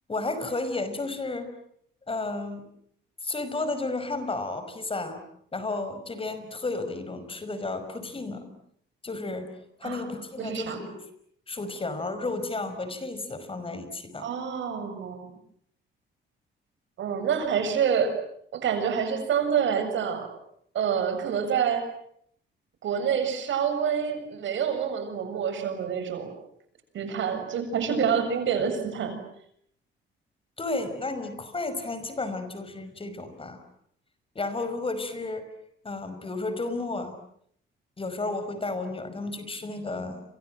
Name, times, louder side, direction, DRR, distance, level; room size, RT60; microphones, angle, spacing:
voice 1, 0.1-1.5 2.1-2.6 3.2-5.2 5.5-8.5 9.0-9.5 9.8-11.0 11.5-14.3 30.6-33.6 34.4-35.5 35.8-37.2 38.0-40.2, left 3 dB, 25° left, 10 dB, 5.5 m, -32 dB
voice 2, 10.4-10.8 14.2-15.3 17.0-18.1 18.5-20.3 20.7-21.8 22.8-26.3 26.9-29.2, right 7 dB, 70° right, 8 dB, 7.3 m, -27 dB
30.0 x 25.5 x 7.7 m, 0.69 s
cardioid pair, 90°, 20 cm